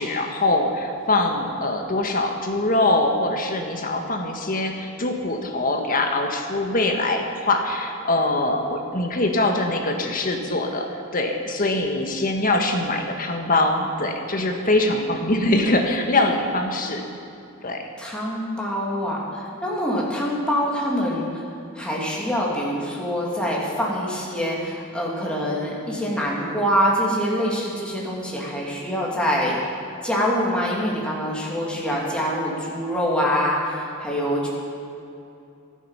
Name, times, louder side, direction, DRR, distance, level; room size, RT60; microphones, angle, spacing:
voice 1, 0.0-10.9 11.1-17.0 17.6-17.9, left 2 dB, 45° left, 3 dB, 1.6 m, -23 dB
voice 2, 18.0-21.4 21.7-29.6 30.0-34.5, equal, 5° left, -4 dB, 2.8 m, -25 dB
24.5 x 8.2 x 5.8 m, 2.7 s
head